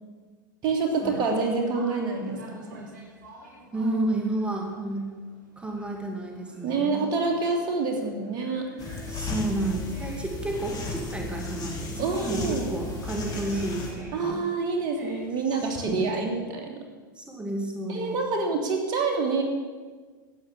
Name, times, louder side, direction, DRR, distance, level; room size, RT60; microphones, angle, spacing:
voice 1, 0.6-2.9 6.6-8.6 12.0-12.7 14.1-16.8 17.9-19.4, right 4 dB, 45° right, 2 dB, 2.9 m, -27 dB
Conversation, 0.9-15.9, right 2 dB, 70° right, 5.1 m, -51 dB
voice 2, 3.7-5.1 5.6-7.1 9.1-14.5 15.5-16.3 17.1-18.2, right 2 dB, 10° right, 1 dB, 2.5 m, -31 dB
sound 1, 8.8-13.9, left 3 dB, 35° left, 3.4 m, -34 dB
13.0 x 9.4 x 7.6 m, 1.4 s
hypercardioid pair, 90°, 11 cm